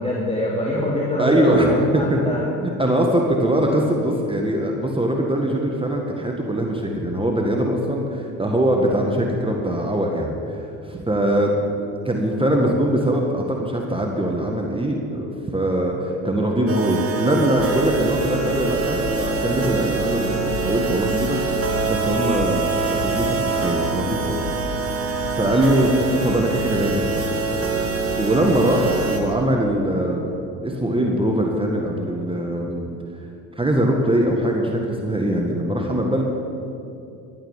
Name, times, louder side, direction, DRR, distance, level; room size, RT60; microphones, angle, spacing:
voice 1, 0.0-2.4, left 1 dB, 15° left, -5 dB, 2.7 m, -24 dB
voice 2, 1.2-2.2 2.6-24.4 25.3-25.9 26.2-27.3 28.1-32.9 33.6-36.2, right 1 dB, 10° right, 0 dB, 1.7 m, -22 dB
sound 1, 16.7-29.2, right 5 dB, 30° right, 2.1 m, -25 dB
sound 2, 17.5-29.4, left 5 dB, 85° left, 1.1 m, -33 dB
13.0 x 9.0 x 7.3 m, 2.7 s
hypercardioid pair, 65°, 45 cm